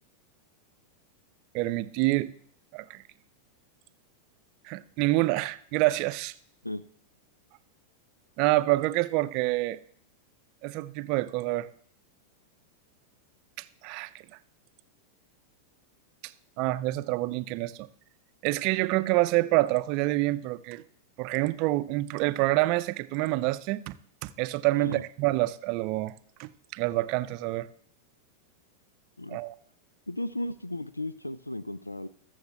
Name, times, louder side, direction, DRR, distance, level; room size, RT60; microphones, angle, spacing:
voice 1, 1.5-2.3 2.7-3.0 4.6-6.3 8.4-9.8 10.6-11.7 13.6-14.1 16.2-16.3 16.6-17.9 18.4-20.8 21.2-24.0 24.2-26.1 26.4-27.7 29.3-29.5, right 19 dB, 45° right, 0.5 m, -27 dB
voice 2, 30.1-32.1, left 1 dB, 85° left, 0.4 m, -35 dB
21.0 x 7.2 x 3.3 m
figure-of-eight pair, 90°, 0 cm